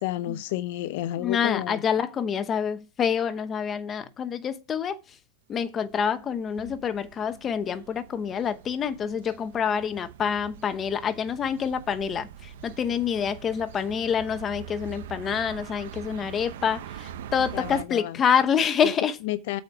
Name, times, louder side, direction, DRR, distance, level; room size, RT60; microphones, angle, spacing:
voice 1, 0.0-1.8 17.5-18.2 18.8-18.9 19.2-19.6, left 15 dB, 60° left, 0.6 m, -30 dB
voice 2, 1.2-5.0 5.5-19.1, left 7 dB, 25° left, 0.9 m, -27 dB
sound 1, 5.9-17.8, right 9 dB, 75° right, 0.9 m, -43 dB
8.3 x 5.1 x 6.1 m
supercardioid pair, 150°, 0 cm